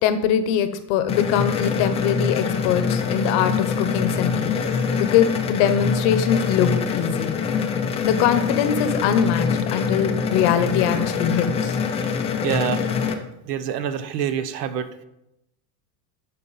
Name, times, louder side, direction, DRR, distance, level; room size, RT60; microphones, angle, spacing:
voice 1, 0.0-4.6 5.0-7.3 8.0-11.8, left 8 dB, 50° left, 11 dB, 0.9 m, -22 dB
sound 1, 1.1-13.1, left 6 dB, 15° left, 0.3 m, -24 dB
voice 2, 11.9-12.8 13.4-14.9, right 9 dB, 80° right, 12 dB, 0.9 m, -27 dB
11.5 x 4.1 x 4.1 m, 0.84 s
supercardioid pair, 140°, 47 cm